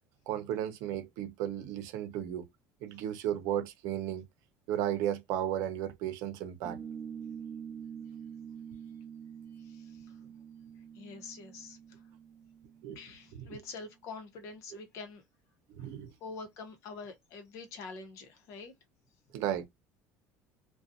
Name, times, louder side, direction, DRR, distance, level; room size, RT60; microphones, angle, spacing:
voice 1, 0.3-2.5 2.8-4.2 4.7-6.8 12.8-13.0 15.7-16.1 19.3-19.7, right 11 dB, 75° right, 0.6 m, -34 dB
sound 1, 6.6-13.6, right 7 dB, 25° right, 0.4 m, -46 dB
voice 2, 9.5-10.2 10.9-12.0 12.9-15.2 15.8-15.9 16.2-18.7, left 4 dB, 60° left, 0.8 m, -46 dB
2.5 x 2.2 x 2.5 m
cardioid pair, 155°, 6 cm